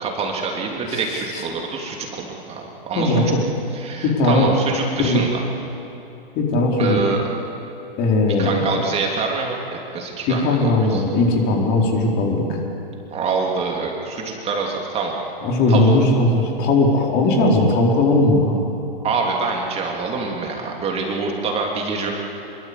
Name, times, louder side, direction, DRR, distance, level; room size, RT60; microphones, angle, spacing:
voice 1, 0.0-3.2 3.7-5.4 6.8-7.2 8.4-11.0 13.1-15.1 15.7-15.9 19.0-22.1, right 4 dB, 20° right, 0 dB, 3.2 m, -25 dB
voice 2, 0.9-1.4 2.9-3.4 4.0-4.5 5.0-5.2 6.3-7.0 8.0-8.5 10.3-12.6 15.4-18.6, left 2 dB, 35° left, 0 dB, 4.7 m, -18 dB
26.0 x 23.5 x 8.5 m, 2.8 s
hypercardioid pair, 130°, 30 cm